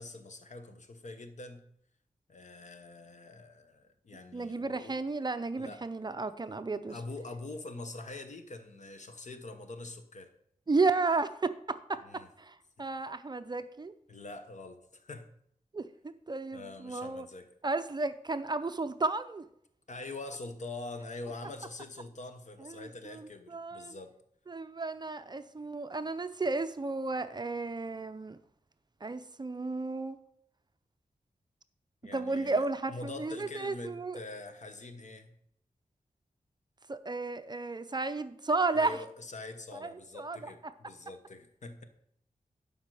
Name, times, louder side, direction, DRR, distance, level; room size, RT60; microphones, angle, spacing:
voice 1, 0.0-1.6 2.3-5.0 5.6-5.8 6.9-10.3 12.0-12.3 14.1-15.3 16.5-17.5 19.9-24.1 32.0-35.3 38.7-41.8, left 2 dB, 60° left, 7 dB, 1.1 m, -44 dB
voice 2, 4.3-7.0 10.7-13.9 15.7-15.9 16.3-17.3 17.6-19.4 22.6-24.0 24.5-28.4 29.0-30.2 32.1-34.2 36.9-39.0 39.7-40.5, right 3 dB, 30° right, 11 dB, 0.5 m, -33 dB
12.0 x 5.3 x 4.8 m, 0.71 s
wide cardioid pair, 105°, 14 cm